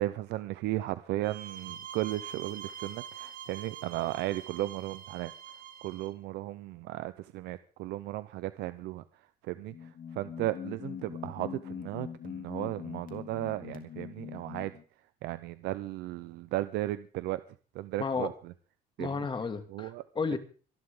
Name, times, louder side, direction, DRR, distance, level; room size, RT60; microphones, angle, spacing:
voice 1, 0.0-5.3 5.8-9.0 9.4-14.7 15.2-17.4 17.7-18.5 19.0-19.2 19.7-20.0, right 16 dB, 85° right, 14 dB, 0.8 m, -35 dB
sound 1, 1.2-6.1, right 9 dB, 55° right, 2.5 m, -45 dB
sound 2, 9.6-14.8, left 8 dB, 55° left, 2.9 m, -42 dB
voice 2, 19.0-20.4, left 4 dB, 30° left, 8 dB, 2.5 m, -33 dB
25.5 x 11.5 x 3.8 m, 0.39 s
cardioid pair, 110°, 17 cm